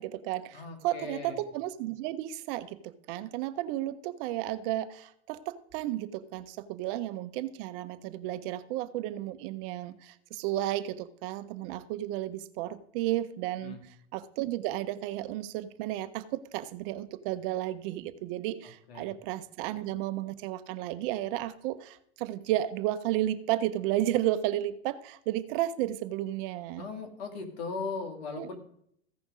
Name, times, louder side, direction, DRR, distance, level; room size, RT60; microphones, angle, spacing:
voice 1, 0.0-26.9 28.3-28.6, right 14 dB, 60° right, 13 dB, 0.8 m, -33 dB
voice 2, 0.5-1.4 13.6-13.8 18.9-19.1 26.8-28.6, left 4 dB, 70° left, 4 dB, 2.5 m, -38 dB
15.5 x 5.3 x 4.9 m, 0.68 s
hypercardioid pair, 100°, 32 cm